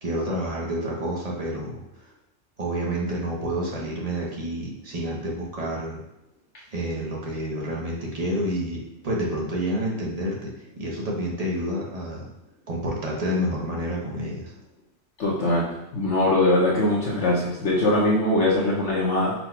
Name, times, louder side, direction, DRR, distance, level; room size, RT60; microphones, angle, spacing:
voice 1, 0.0-1.8 2.6-6.0 6.7-12.3 12.7-14.5, equal, 35° right, -3 dB, 0.9 m, -29 dB
voice 2, 15.2-19.3, left 1 dB, 75° left, -4 dB, 1.1 m, -22 dB
4.0 x 2.4 x 4.5 m, 0.87 s
omnidirectional pair, 1.2 m